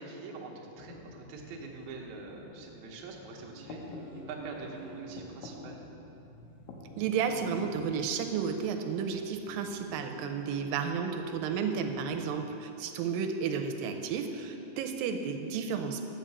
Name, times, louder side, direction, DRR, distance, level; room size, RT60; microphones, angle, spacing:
voice 1, 0.0-4.0 4.3-5.8 12.1-12.5, right 3 dB, 70° right, 0 dB, 2.0 m, -44 dB
sound 1, 0.8-12.2, left 3 dB, 90° left, 2.5 m, -51 dB
sound 2, 1.3-2.5 3.0-5.4 6.0-11.0 11.9-13.1 13.4-13.5 13.9-14.8, right 2 dB, 70° left, 2.7 m, -52 dB
voice 2, 7.0-16.1, right 6 dB, 90° right, 6 dB, 2.3 m, -32 dB
7.5 x 5.4 x 6.7 m, 2.9 s
omnidirectional pair, 4.0 m